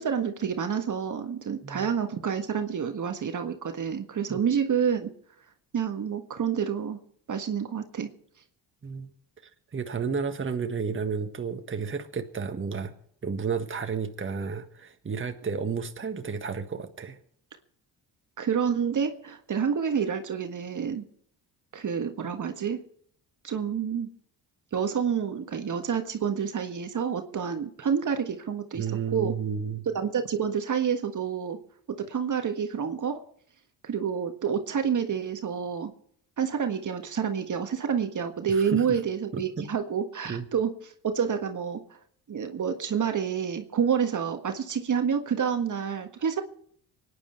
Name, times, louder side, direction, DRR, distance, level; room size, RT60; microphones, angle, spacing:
voice 1, 0.0-5.1 5.7-7.0 7.3-8.1 18.4-21.0 21.7-22.8 23.4-24.1 24.7-28.8 29.1-29.3 29.9-31.6 32.0-33.2 33.8-35.9 36.4-41.8 42.3-46.4, right 7 dB, 45° right, 6 dB, 1.6 m, -28 dB
voice 2, 9.7-12.9 13.2-17.2 28.7-29.9 38.5-39.0 39.3-39.7 40.2-40.5, right 5 dB, 30° right, 6 dB, 1.6 m, -32 dB
24.5 x 10.0 x 4.5 m, 0.63 s
hypercardioid pair, 60°, 43 cm